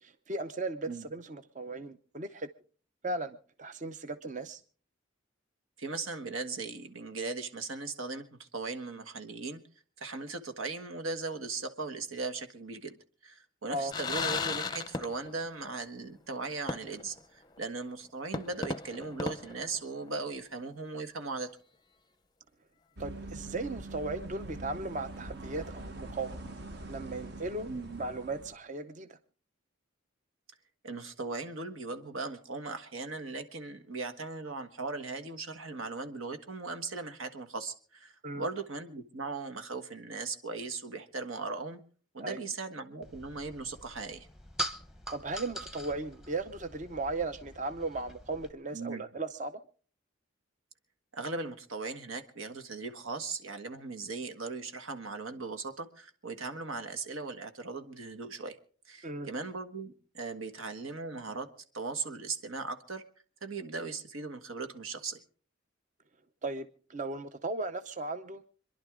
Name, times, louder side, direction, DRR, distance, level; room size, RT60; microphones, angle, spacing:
voice 1, 0.0-2.5 3.0-4.6 13.7-13.9 23.0-26.4 26.9-27.7 28.0-29.2 38.2-38.4 42.2-42.4 45.1-49.6 59.0-59.3 66.4-68.5, right 2 dB, 35° right, 0.6 m, -37 dB
voice 2, 5.8-9.6 10.0-13.0 13.2-21.5 27.6-28.0 30.8-41.8 42.1-44.3 48.7-49.0 51.1-58.6 58.9-61.5 61.7-63.0 63.4-65.2, right 3 dB, 85° right, 1.6 m, -38 dB
sound 1, 13.9-15.5 15.8-15.9 16.7-17.2 17.6-17.7 18.3-20.3, left 4 dB, 20° left, 0.6 m, -36 dB
sound 2, 23.0-28.5, right 2 dB, 55° right, 1.3 m, -43 dB
sound 3, 43.0-48.5, right 1 dB, ahead, 0.9 m, -43 dB
26.5 x 11.0 x 3.7 m
head